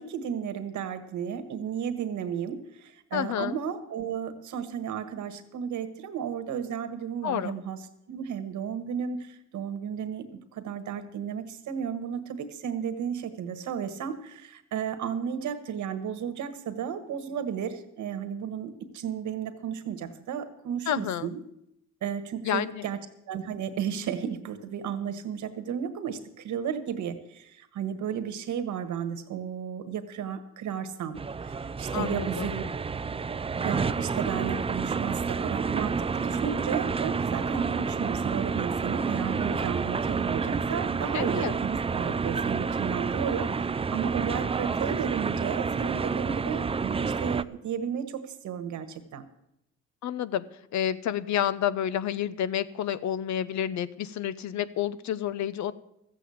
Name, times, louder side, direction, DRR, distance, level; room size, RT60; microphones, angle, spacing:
voice 1, 0.0-21.4 22.0-23.0 23.3-32.6 33.6-49.2, right 8 dB, 75° right, 9 dB, 1.5 m, -33 dB
voice 2, 3.1-3.5 7.2-7.5 20.9-21.3 22.4-22.8 31.9-32.5 41.1-41.5 50.0-50.4 50.7-55.7, left 10 dB, 70° left, 16 dB, 0.8 m, -29 dB
sound 1, 31.1-47.4, right 5 dB, 20° right, 0.4 m, -29 dB
14.0 x 8.2 x 8.4 m, 0.80 s
cardioid pair, 90°, 30 cm